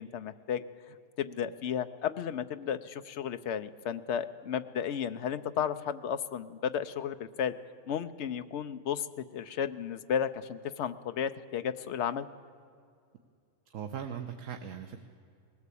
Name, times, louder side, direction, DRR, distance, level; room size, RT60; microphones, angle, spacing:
voice 1, 0.0-7.5 7.9-9.1 9.3-12.3, left 8 dB, 65° left, 11 dB, 1.0 m, -33 dB
voice 2, 13.7-15.0, right 8 dB, 90° right, 6 dB, 1.3 m, -39 dB
20.0 x 16.5 x 8.4 m, 2.3 s
omnidirectional pair, 1.3 m